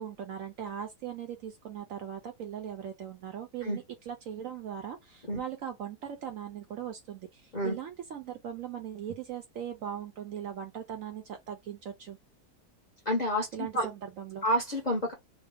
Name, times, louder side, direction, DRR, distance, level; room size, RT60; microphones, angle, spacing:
voice 1, 0.0-12.2 13.5-14.4, right 9 dB, 70° right, 0.8 m, -39 dB
voice 2, 13.0-13.5 13.7-13.9 14.4-15.1, equal, 35° left, 0.7 m, -28 dB
3.0 x 2.1 x 3.4 m
omnidirectional pair, 1.7 m